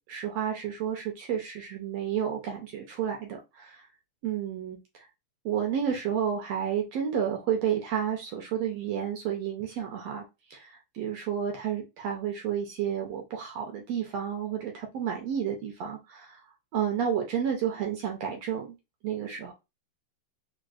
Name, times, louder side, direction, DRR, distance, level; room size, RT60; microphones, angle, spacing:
voice 1, 0.1-3.8 4.2-4.8 5.4-10.2 10.5-16.4 16.7-18.7 19.0-19.5, right 8 dB, 75° right, 1.5 m, -31 dB
4.8 x 2.0 x 2.4 m
omnidirectional pair, 3.4 m